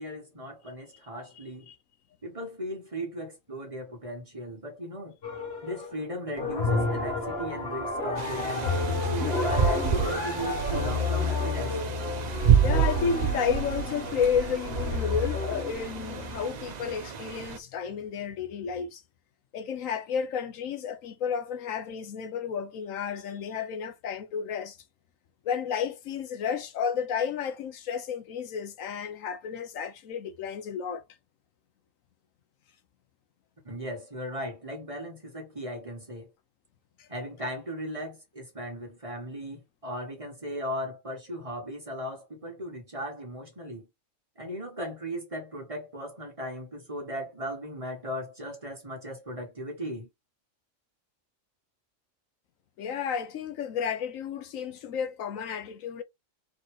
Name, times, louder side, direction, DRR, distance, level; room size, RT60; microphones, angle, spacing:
voice 1, 0.0-1.7 2.2-5.2 5.6-11.8 33.6-36.3 37.1-43.9 44.4-50.1, equal, 25° right, 1.3 m, -37 dB
sound 1, 5.2-6.0 6.4-16.4, left 3 dB, 50° left, 1.5 m, -31 dB
Wind through trees, 8.2-17.6, right 8 dB, 55° right, 0.5 m, -29 dB
voice 2, 12.6-19.0 19.5-24.8 25.4-31.0 37.0-37.1 52.8-56.0, left 7 dB, 75° left, 1.1 m, -32 dB
4.2 x 3.3 x 3.1 m
omnidirectional pair, 1.4 m